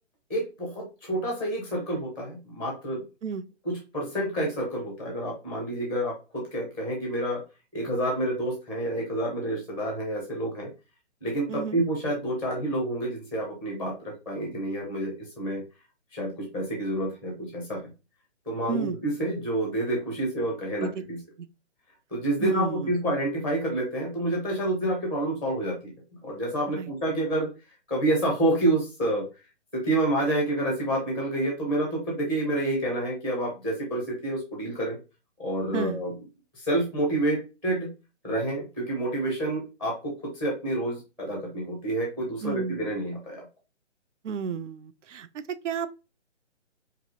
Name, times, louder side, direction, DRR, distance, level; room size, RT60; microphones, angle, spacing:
voice 1, 0.3-3.0 3.6-7.4 7.7-10.7 11.2-15.6 16.1-17.8 18.5-21.2 22.1-25.8 26.2-27.5 27.9-29.2 29.7-35.0 35.4-36.1 36.5-37.9 38.2-43.4, right 1 dB, 5° right, 0.6 m, -28 dB
voice 2, 11.5-11.8 18.7-19.0 20.8-20.9 21.4-21.5 22.4-22.9 26.7-26.9 35.7-36.0 42.4-42.9 44.2-45.9, right 6 dB, 80° right, 0.6 m, -32 dB
4.6 x 2.5 x 2.8 m
hypercardioid pair, 155°, 37 cm